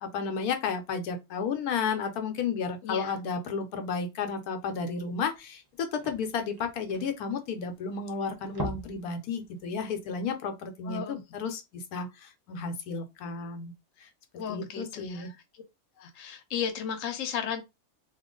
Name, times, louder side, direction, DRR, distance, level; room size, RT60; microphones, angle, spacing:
voice 1, 0.0-13.7 14.0-14.1 14.5-15.3, left 5 dB, 85° left, 1.2 m, -32 dB
voice 2, 2.8-3.2 10.9-11.2 14.4-15.3 16.0-17.6, left 7 dB, 65° left, 1.1 m, -34 dB
sound 1, 5.0-5.1 5.3-5.4 5.6-7.9 8.3-9.1 9.4-9.6 10.0-10.1, right 1 dB, 20° right, 0.6 m, -40 dB
2.9 x 2.4 x 3.7 m
omnidirectional pair, 1.5 m